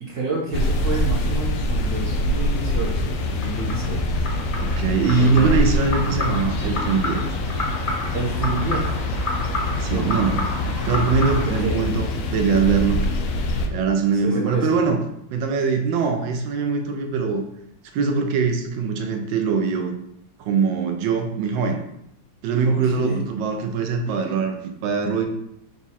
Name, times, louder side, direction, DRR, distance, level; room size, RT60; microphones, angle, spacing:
voice 1, 0.0-4.2 5.2-5.6 8.1-8.9 9.9-10.1 11.5-11.8 14.2-14.8 22.7-23.2, right 3 dB, 60° right, -4 dB, 0.8 m, -29 dB
sound 1, 0.5-13.7, left 1 dB, 85° left, 0.7 m, -25 dB
sound 2, 2.7-11.6, left 2 dB, 40° left, 0.7 m, -31 dB
voice 2, 4.6-7.2 9.6-10.5 10.9-13.1 13.7-15.0 15.3-17.4 17.9-20.0 20.4-21.8 22.4-25.3, right 5 dB, 90° right, 5 dB, 1.3 m, -22 dB
4.1 x 2.4 x 4.1 m, 0.75 s
omnidirectional pair, 2.0 m